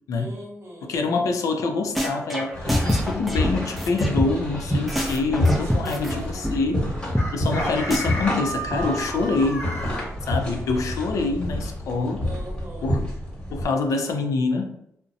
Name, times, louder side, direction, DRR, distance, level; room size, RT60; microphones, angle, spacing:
voice 1, 0.1-0.9 5.3-6.4 12.2-12.9, right 1 dB, 50° right, -1 dB, 0.9 m, -40 dB
voice 2, 0.8-6.9 7.3-9.7 10.3-12.2 12.8-13.0 13.5-14.7, left 3 dB, 80° left, 4 dB, 0.4 m, -26 dB
sound 1, 1.6-1.7 1.9-4.6 4.9-6.1 6.4-6.5 6.8-6.9 7.1-7.3 7.5-7.6 7.9-8.0, equal, ahead, 0.4 m, -25 dB
sound 2, 2.5-13.7, left 1 dB, 15° left, 1.1 m, -28 dB
Chicken rooster, 7.2-10.1, right 1 dB, 50° left, 0.7 m, -32 dB
2.5 x 2.1 x 2.6 m, 0.73 s
cardioid pair, 85°, 6 cm